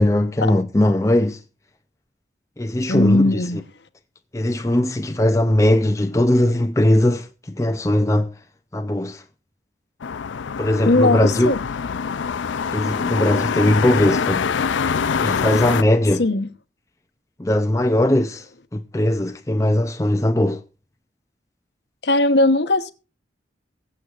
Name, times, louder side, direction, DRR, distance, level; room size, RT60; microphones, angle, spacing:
voice 1, 0.0-1.4 2.6-3.4 4.3-8.3 8.7-9.2 10.6-11.5 12.7-14.5 15.2-16.2 17.4-18.5 18.7-20.6, left 1 dB, 15° left, 0.5 m, -19 dB
voice 2, 2.9-3.6 10.8-11.6 16.2-16.5 22.0-22.9, left 2 dB, 65° left, 1.1 m, -18 dB
sound 1, 10.0-15.8, left 6 dB, 80° left, 0.4 m, -24 dB
23.0 x 7.8 x 2.5 m
head